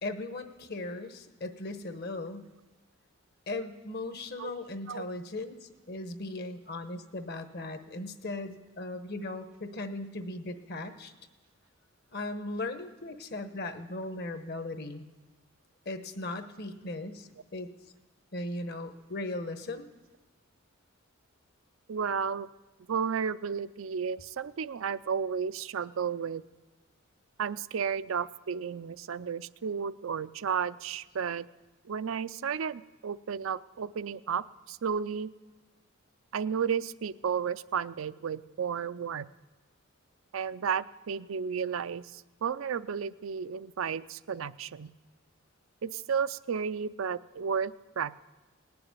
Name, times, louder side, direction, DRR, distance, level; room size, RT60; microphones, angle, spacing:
voice 1, 0.0-2.5 3.5-11.1 12.1-15.1 15.8-17.7 18.3-19.9, left 2 dB, 50° left, 9 dB, 1.1 m, -38 dB
voice 2, 21.9-22.5 22.9-26.4 27.4-31.5 31.8-35.3 36.3-39.3 40.3-44.9 45.8-48.2, right 7 dB, 75° right, 14 dB, 0.5 m, -33 dB
19.0 x 6.9 x 9.6 m, 1.2 s
head